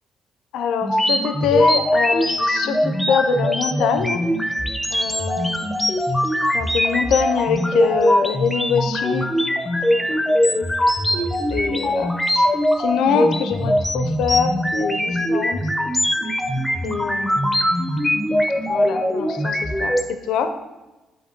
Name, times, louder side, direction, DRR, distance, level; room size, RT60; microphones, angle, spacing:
voice 1, 0.5-4.2 4.9-5.5 6.5-9.3 9.9-10.7 11.1-12.5 12.8-15.6 16.8-17.8 18.7-20.5, left 7 dB, 85° left, 8 dB, 0.4 m, -24 dB
sound 1, 0.8-20.0, equal, 5° left, 0.5 m, -21 dB
8.5 x 2.9 x 4.3 m, 1.1 s
cardioid pair, 90°, 0 cm